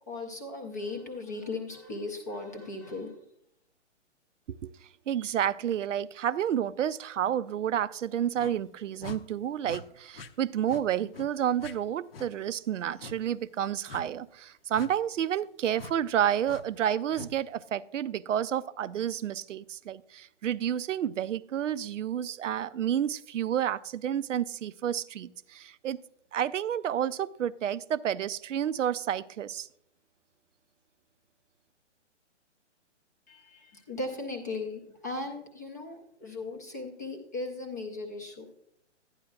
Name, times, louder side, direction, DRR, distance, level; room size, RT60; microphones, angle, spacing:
voice 1, 0.1-3.2 33.3-38.5, left 2 dB, 15° left, 0.4 m, -37 dB
voice 2, 5.1-26.0 26.3-29.7, right 10 dB, 90° right, 0.5 m, -30 dB
sound 1, 8.4-8.6 9.0-9.2 9.6-9.8 10.1-10.3 10.7-10.8 11.1-11.3 11.6-11.7 12.1-12.3 13.0-13.2 13.9-14.1 14.7-14.9 15.8-15.9 16.5-16.6 17.1-17.3, left 4 dB, 55° left, 0.7 m, -43 dB
11.5 x 9.7 x 2.3 m
hypercardioid pair, 155°, 36 cm